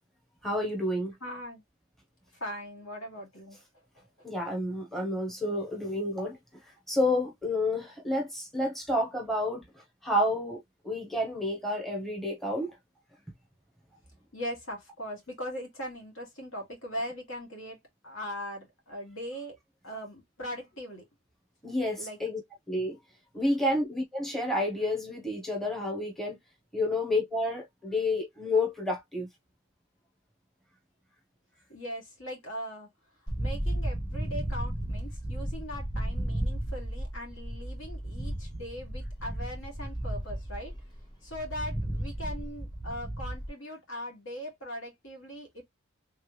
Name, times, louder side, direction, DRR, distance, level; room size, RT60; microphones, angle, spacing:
voice 1, 0.4-1.1 4.2-6.6 6.9-9.6 10.0-12.7 21.6-22.4 22.7-23.0 23.3-26.4 26.7-29.3, left 1 dB, ahead, 0.9 m, -30 dB
voice 2, 1.2-1.6 2.4-3.6 14.3-17.8 18.0-19.6 19.8-21.0 22.0-22.2 31.7-32.9 33.4-40.7 41.2-45.6, equal, 65° left, 1.9 m, -40 dB
sound 1, 33.3-43.5, right 1 dB, 20° left, 1.2 m, -34 dB
3.4 x 3.2 x 3.3 m
head